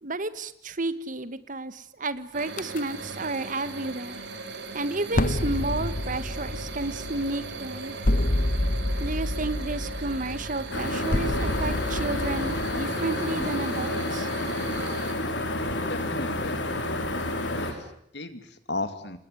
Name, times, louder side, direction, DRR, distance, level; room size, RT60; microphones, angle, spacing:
voice 1, 0.0-4.2 4.7-8.0 9.0-14.3, right 2 dB, 45° right, 14 dB, 1.6 m, -32 dB
sound 1, 2.3-15.1, right 3 dB, 70° right, 4.5 m, -38 dB
sound 2, 2.6-2.8 5.1-12.8, left 1 dB, 50° left, 1.1 m, -29 dB
sound 3, 10.7-17.7, left 1 dB, 85° left, 4.5 m, -29 dB
voice 2, 15.9-16.6 17.5-19.2, left 2 dB, 70° left, 10 dB, 2.5 m, -35 dB
27.0 x 19.5 x 10.0 m, 0.72 s
head